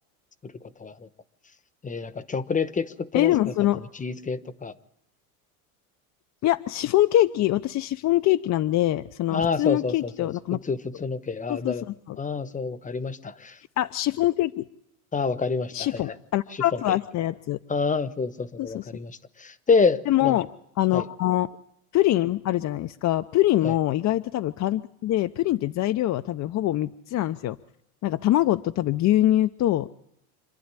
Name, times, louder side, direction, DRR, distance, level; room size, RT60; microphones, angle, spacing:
voice 1, 0.4-1.1 1.8-3.5 3.9-4.8 9.3-11.9 12.2-13.6 15.1-16.1 16.7-17.0 17.7-20.4 20.9-21.0 23.6-23.7, left 4 dB, 20° left, 14 dB, 1.1 m, -28 dB
voice 2, 3.1-3.8 6.4-10.6 11.5-11.7 12.1-12.2 13.8-14.7 15.7-17.6 18.6-18.9 20.1-20.5 20.8-21.5 21.9-27.6 28.0-29.9, left 14 dB, 40° left, 10 dB, 0.7 m, -24 dB
27.0 x 11.5 x 9.8 m, 0.82 s
supercardioid pair, 105°, 43 cm